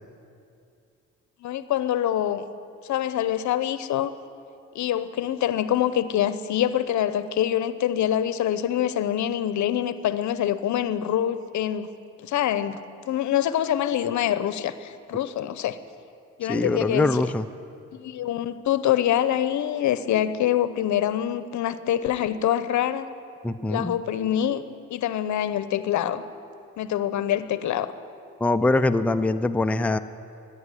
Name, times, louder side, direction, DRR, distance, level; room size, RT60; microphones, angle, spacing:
voice 1, 1.4-2.4 2.8-4.1 4.7-11.9 12.2-12.8 13.0-15.8 16.4-17.3 17.9-23.1 23.7-24.6 24.9-26.2 26.8-27.9, left 11 dB, 70° left, 13 dB, 0.8 m, -25 dB
voice 2, 16.5-17.5 23.4-23.9 28.4-30.0, left 2 dB, 5° left, 8 dB, 0.5 m, -23 dB
14.5 x 10.0 x 9.8 m, 2.5 s
cardioid pair, 90°, 30 cm